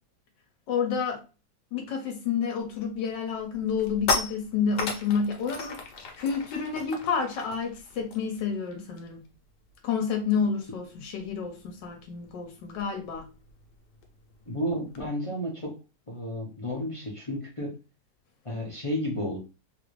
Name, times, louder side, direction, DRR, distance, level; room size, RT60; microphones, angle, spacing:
voice 1, 0.7-1.2 1.7-5.8 6.2-9.2 9.8-13.3, left 6 dB, 90° left, 1.4 m, -29 dB
sound 1, 2.7-2.9 3.3-9.3 9.5-9.8 10.1-15.1, left 3 dB, 70° left, 1.3 m, -36 dB
voice 2, 14.5-15.7 16.1-17.7 18.4-19.4, equal, 40° left, 0.4 m, -32 dB
3.6 x 2.5 x 3.1 m
omnidirectional pair, 1.9 m